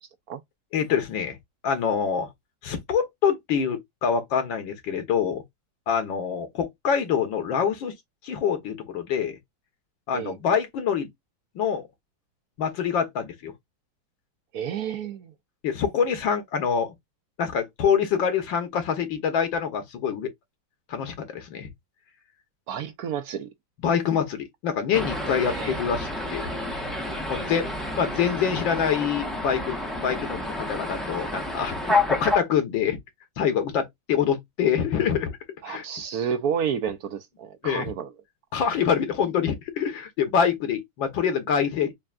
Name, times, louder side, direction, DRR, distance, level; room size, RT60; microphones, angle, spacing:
voice 1, 0.7-1.4 1.6-2.3 2.6-5.4 5.9-7.9 8.2-9.4 10.1-11.1 11.5-11.8 12.6-13.5 15.6-16.9 17.4-20.3 20.9-21.7 23.8-26.5 27.3-27.7 28.0-33.0 33.4-35.4 35.7-35.8 37.6-37.9 38.5-41.9, left 7 dB, 80° left, 1.7 m, -25 dB
voice 2, 14.5-15.3 22.7-23.5 25.4-25.7 27.3-27.4 35.6-38.1, right 8 dB, 70° right, 0.9 m, -30 dB
sound 1, 24.9-32.4, left 2 dB, ahead, 0.3 m, -29 dB
5.5 x 2.7 x 2.4 m
omnidirectional pair, 2.1 m